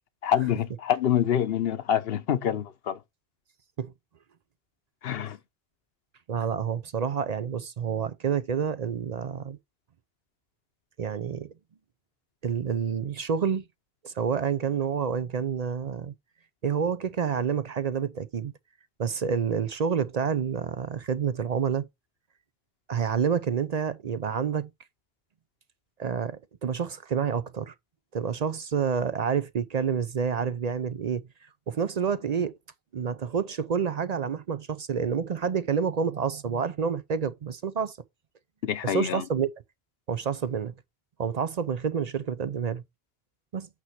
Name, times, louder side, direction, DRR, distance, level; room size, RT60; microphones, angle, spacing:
voice 1, 0.2-3.0 5.0-5.4 38.7-39.3, left 9 dB, 65° left, 1.0 m, -26 dB
voice 2, 6.3-9.6 11.0-11.5 12.4-13.6 14.0-16.1 16.6-18.5 19.0-21.9 22.9-24.7 26.0-27.7 28.1-31.2 31.7-32.6 32.9-38.0 38.8-39.5 40.1-40.7 41.2-42.8 43.5-43.7, right 7 dB, 50° right, 0.5 m, -28 dB
8.4 x 3.0 x 5.8 m
omnidirectional pair, 1.1 m